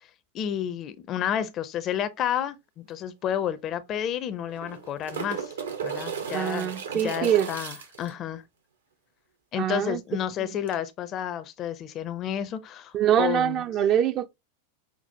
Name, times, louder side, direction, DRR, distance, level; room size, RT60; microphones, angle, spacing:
voice 1, 0.3-5.5 5.8-8.4 9.5-13.6, left 10 dB, 35° left, 0.4 m, -31 dB
sound 1, 2.9-3.0 3.3-3.4 4.4-8.1 10.7-10.8, right 6 dB, 65° right, 0.7 m, -35 dB
voice 2, 6.3-7.5 9.6-10.0 10.4-10.5 12.9-14.3, right 10 dB, 35° right, 0.4 m, -24 dB
5.8 x 2.0 x 2.7 m
figure-of-eight pair, 90°, 0 cm